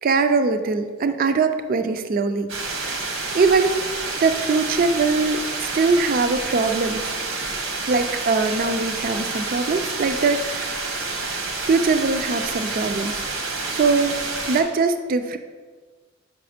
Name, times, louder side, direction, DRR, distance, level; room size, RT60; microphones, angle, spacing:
voice 1, 0.0-2.5 3.3-3.8 4.2-7.1 7.9-10.8 11.7-15.4, right 4 dB, 45° right, 9 dB, 0.4 m, -22 dB
sound 1, 2.5-14.6, right 3 dB, 70° right, 1.0 m, -29 dB
5.9 x 5.6 x 5.0 m, 1.5 s
head